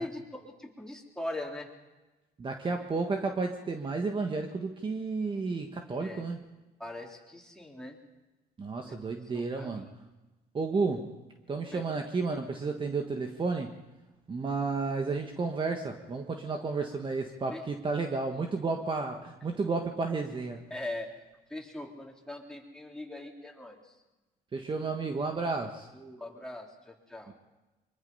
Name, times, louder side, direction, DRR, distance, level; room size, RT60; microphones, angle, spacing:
voice 1, 0.0-1.7 6.0-6.3 6.8-8.0 8.8-8.9 9.3-9.8 11.7-11.9 17.5-17.9 20.7-21.1 21.5-23.8 25.9-27.3, left 1 dB, 5° left, -1 dB, 3.7 m, -41 dB
voice 2, 2.4-6.4 8.6-9.9 10.5-11.1 11.5-13.8 14.3-20.6 24.5-25.9 27.3-27.4, right 4 dB, 30° right, 4 dB, 1.5 m, -32 dB
24.0 x 23.0 x 5.6 m, 1.1 s
cardioid pair, 110°, 17 cm